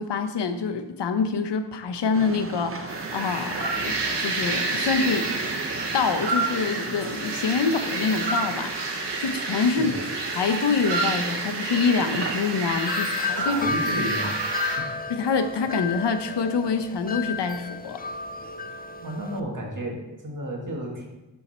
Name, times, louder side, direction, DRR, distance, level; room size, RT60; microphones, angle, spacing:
voice 1, 0.0-5.3 5.9-9.9 10.3-13.6 15.1-18.0, left 5 dB, 75° left, 8 dB, 0.8 m, -26 dB
sound 1, 2.1-12.7, right 4 dB, 30° right, 0.7 m, -36 dB
sound 2, 2.9-14.8, right 3 dB, 75° right, 1.4 m, -29 dB
voice 2, 9.6-10.0 13.1-14.4 14.8-14.9 18.7-21.1, right 1 dB, 45° right, 0 dB, 1.9 m, -33 dB
Wind chime, 12.7-19.4, left 4 dB, 20° left, 0.5 m, -32 dB
12.0 x 4.4 x 4.3 m, 1.0 s
wide cardioid pair, 85°, 42 cm